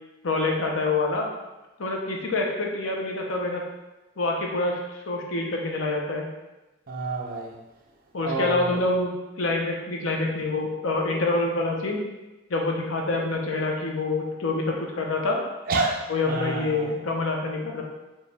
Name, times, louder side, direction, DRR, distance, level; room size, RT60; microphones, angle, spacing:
voice 1, 0.2-1.3 1.8-3.6 4.2-4.8 5.1-6.3 8.1-9.1 9.4-12.0 12.5-15.4 16.1-17.8, left 2 dB, 75° left, 0 dB, 0.7 m, -26 dB
voice 2, 6.9-7.5 8.2-8.6 15.7-16.0 16.3-16.9, right 3 dB, 45° right, 0 dB, 0.5 m, -28 dB
5.1 x 2.5 x 3.2 m, 1.1 s
head